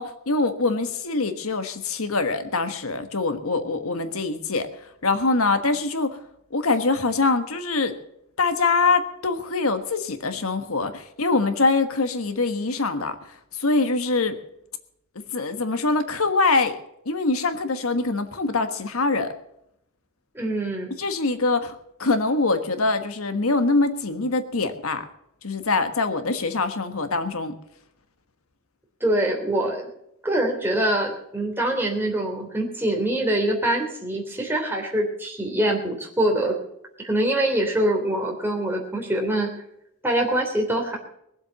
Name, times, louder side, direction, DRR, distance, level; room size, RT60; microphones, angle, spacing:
voice 1, 0.0-6.2 6.5-8.0 8.4-14.4 15.3-16.7 17.0-19.3 20.9-25.0 25.4-27.6, left 3 dB, 80° left, 9 dB, 1.4 m, -24 dB
voice 2, 20.3-20.9 29.0-29.8 30.2-36.5 37.0-39.5 40.0-41.0, right 1 dB, 10° right, 0 dB, 3.1 m, -24 dB
20.5 x 7.8 x 7.0 m, 0.78 s
head